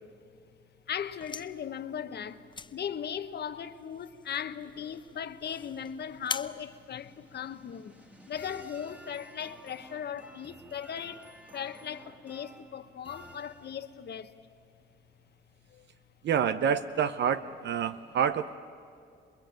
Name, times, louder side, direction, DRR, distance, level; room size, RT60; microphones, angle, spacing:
voice 1, 0.9-2.4 2.7-7.9 8.3-11.2 11.5-14.3, left 8 dB, 55° left, 1.2 m, -38 dB
sound 1, 1.0-7.8, left 4 dB, 25° left, 0.7 m, -44 dB
sound 2, 5.2-14.1, equal, 5° right, 1.8 m, -54 dB
voice 2, 16.2-18.6, right 8 dB, 60° right, 0.7 m, -28 dB
27.5 x 20.5 x 9.1 m
cardioid pair, 90°, 20 cm